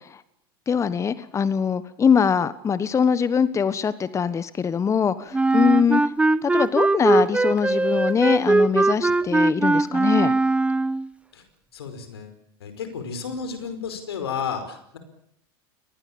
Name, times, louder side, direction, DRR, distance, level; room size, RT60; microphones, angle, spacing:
voice 1, 0.7-6.0 6.4-10.3, left 7 dB, 25° left, 15 dB, 1.3 m, -22 dB
Wind instrument woodwind instrument, 5.3-11.1, right 2 dB, 10° right, 0.9 m, -20 dB
voice 2, 11.7-12.3 12.6-15.0, left 6 dB, 85° left, 9 dB, 5.0 m, -32 dB
24.0 x 19.5 x 8.8 m, 0.74 s
hypercardioid pair, 100°, 13 cm